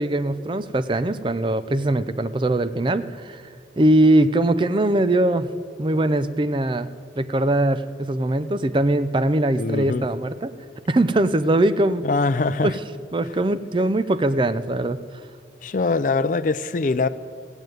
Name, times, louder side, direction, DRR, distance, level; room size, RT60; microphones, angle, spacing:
voice 1, 0.0-3.4 3.8-5.5 5.8-6.9 7.2-10.5 10.9-12.0 12.6-12.8 13.1-15.0, right 1 dB, 25° right, 0.4 m, -21 dB
voice 2, 9.6-10.1 12.0-12.7 15.6-17.1, left 3 dB, 45° left, 0.4 m, -22 dB
16.0 x 8.0 x 9.1 m
head